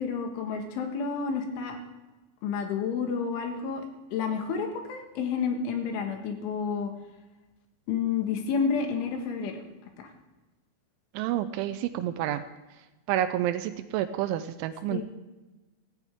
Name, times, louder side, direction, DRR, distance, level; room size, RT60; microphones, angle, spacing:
voice 1, 0.0-1.8 2.4-3.8 4.1-6.9 7.9-9.6 10.0-10.1 14.9-15.0, left 6 dB, 85° left, 4 dB, 4.0 m, -30 dB
voice 2, 11.1-12.4 13.1-15.0, right 12 dB, 90° right, 9 dB, 3.1 m, -29 dB
17.5 x 15.0 x 3.5 m, 1.1 s
omnidirectional pair, 5.4 m